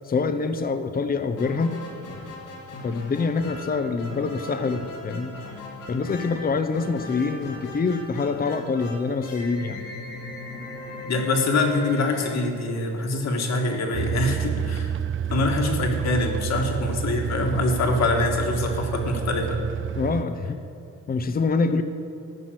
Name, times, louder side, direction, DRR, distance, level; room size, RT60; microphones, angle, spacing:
voice 1, 0.0-1.8 2.8-5.3 5.9-9.8 20.0-20.6 21.1-21.8, left 4 dB, 30° left, 9 dB, 0.8 m, -25 dB
sound 1, 1.3-13.2, left 2 dB, 90° left, 2.4 m, -39 dB
voice 2, 11.1-14.9 15.3-19.6, left 2 dB, 60° left, 2 dB, 2.0 m, -24 dB
sound 2, 13.9-20.2, right 9 dB, 45° right, 0.4 m, -29 dB
14.0 x 5.9 x 7.8 m, 2.7 s
cardioid pair, 90°, 30 cm